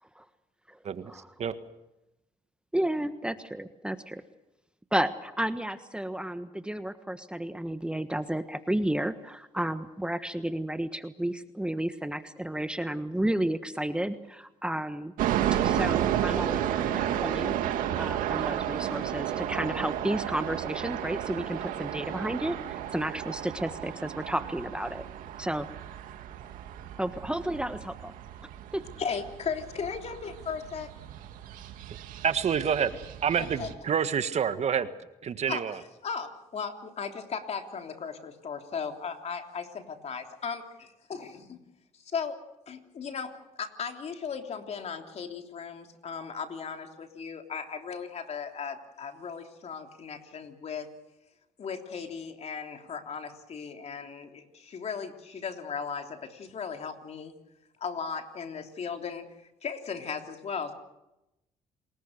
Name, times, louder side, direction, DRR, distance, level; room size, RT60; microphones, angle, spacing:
voice 1, 2.7-4.2 4.9-15.1 15.6-17.6 18.0-25.1 25.4-25.7 27.0-28.0 28.7-28.8, right 1 dB, 5° right, 10 dB, 1.3 m, -32 dB
sound 1, 15.2-33.7, right 10 dB, 80° right, 2.1 m, -32 dB
voice 2, 29.0-30.9 33.4-33.7 35.5-41.6 42.0-42.4 42.7-43.3 43.6-50.9 51.6-57.3 57.8-59.2 59.6-60.7, left 6 dB, 50° left, 5 dB, 3.3 m, -37 dB
voice 3, 32.2-32.9 33.2-34.9 35.2-35.8, right 7 dB, 50° right, 11 dB, 1.6 m, -27 dB
29.0 x 20.5 x 6.7 m, 0.92 s
supercardioid pair, 70°, 14 cm